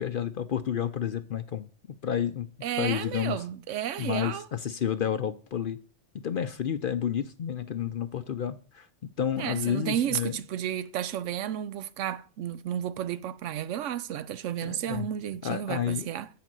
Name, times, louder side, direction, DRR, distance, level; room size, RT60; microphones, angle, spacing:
voice 1, 0.0-1.7 2.0-2.5 2.8-3.4 4.0-5.8 6.2-8.9 9.2-10.4 14.6-15.1 15.4-16.1, left 9 dB, 55° left, 0.7 m, -30 dB
voice 2, 2.6-4.5 9.4-16.3, right 10 dB, 75° right, 0.9 m, -32 dB
8.8 x 5.1 x 7.6 m
omnidirectional pair, 1.3 m